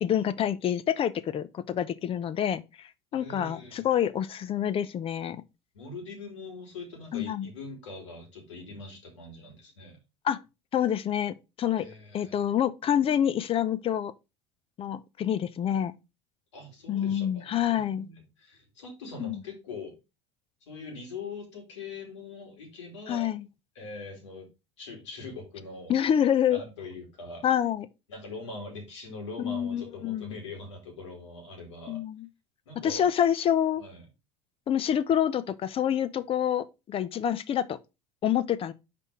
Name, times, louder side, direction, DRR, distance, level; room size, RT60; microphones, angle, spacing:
voice 1, 0.0-2.6 3.1-5.4 7.1-7.5 10.2-10.4 10.7-11.9 12.1-14.1 14.8-16.0 16.9-18.1 19.2-19.4 23.1-23.4 25.9-26.6 27.4-27.9 29.4-30.3 31.9-32.3 32.8-33.8 34.7-37.8 38.2-38.7, left 9 dB, 40° left, 0.7 m, -27 dB
voice 2, 3.1-3.9 5.7-10.0 11.8-12.4 16.5-19.9 20.7-23.3 23.7-24.5 24.8-25.9 26.5-27.4 28.1-32.0 32.7-33.1 33.8-34.1, left 3 dB, 90° left, 2.7 m, -42 dB
5.3 x 4.3 x 4.9 m
hypercardioid pair, 85°, 15 cm